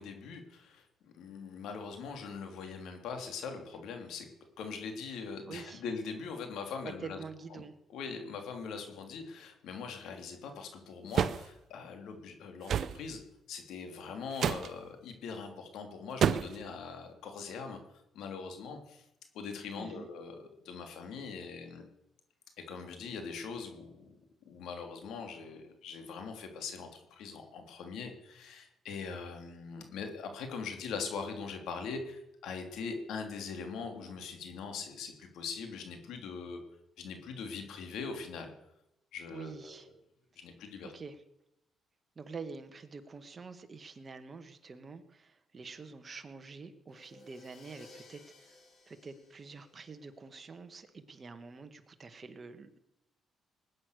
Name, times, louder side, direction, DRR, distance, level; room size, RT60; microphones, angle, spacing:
voice 1, 0.0-4.3 4.6-7.2 7.9-13.2 13.5-17.8 18.1-19.0 19.3-21.8 22.6-24.2 24.4-36.6 37.0-38.5 39.1-39.8 40.4-40.9, left 5 dB, 80° left, 5 dB, 3.1 m, -42 dB
voice 2, 5.5-5.8 6.8-7.7 19.8-20.1 39.3-39.9 40.8-41.2 42.2-52.8, right 4 dB, 35° right, 8 dB, 1.9 m, -47 dB
sound 1, 11.1-11.5 12.7-13.0 14.4-14.7 16.2-16.6, right 8 dB, 60° right, 0.8 m, -28 dB
Crash cymbal, 46.9-50.6, left 3 dB, 60° left, 6.8 m, -58 dB
20.0 x 9.7 x 6.7 m, 0.87 s
cardioid pair, 90°, 0 cm